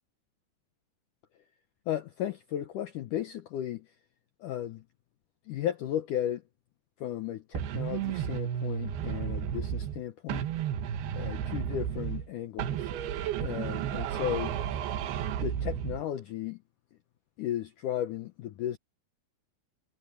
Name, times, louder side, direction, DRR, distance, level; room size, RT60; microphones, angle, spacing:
voice 1, 1.9-3.9 4.4-4.8 5.5-6.4 7.0-10.4 11.1-12.9 13.4-14.6 15.4-16.6 17.4-18.8, left 11 dB, 75° left, 1.9 m, -35 dB
sound 1, 7.5-10.0 10.3-12.3 12.6-16.0, right 9 dB, 75° right, 3.2 m, -33 dB
omnidirectional pair, 4.8 m